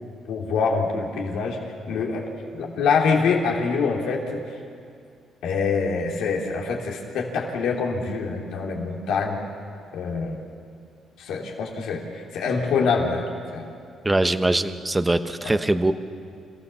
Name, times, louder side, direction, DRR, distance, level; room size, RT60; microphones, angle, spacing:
voice 1, 0.3-1.6 1.9-4.4 5.4-9.4 9.9-10.4 11.2-13.6 15.4-15.6, left 5 dB, 85° left, -1 dB, 3.4 m, -25 dB
voice 2, 14.0-15.9, right 2 dB, 15° right, 10 dB, 1.0 m, -22 dB
27.5 x 16.0 x 7.1 m, 2.4 s
cardioid pair, 90°, 0 cm